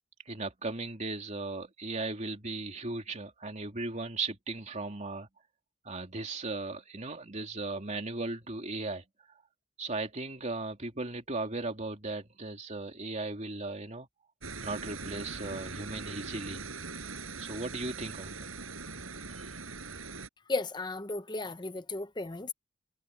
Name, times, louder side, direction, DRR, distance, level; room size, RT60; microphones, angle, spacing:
voice 1, 0.2-5.3 5.8-9.0 9.8-14.1 14.6-16.7 17.4-18.5, right 3 dB, 35° right, 3.1 m, -37 dB
sound 1, 14.4-20.3, right 4 dB, 90° right, 7.5 m, -41 dB
voice 2, 20.5-22.5, left 3 dB, 20° left, 0.9 m, -35 dB
head